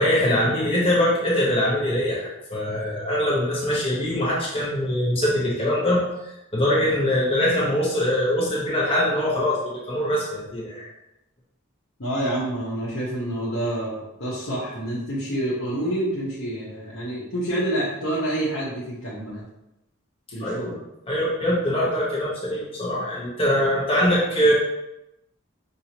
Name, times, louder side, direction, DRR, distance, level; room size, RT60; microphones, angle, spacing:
voice 1, 0.0-6.0 6.5-10.9 20.4-20.8 21.1-24.5, equal, 25° left, -6 dB, 1.0 m, -23 dB
voice 2, 12.0-19.4 20.3-20.8, right 1 dB, 60° left, -9 dB, 1.0 m, -28 dB
5.3 x 2.7 x 2.9 m, 0.88 s
head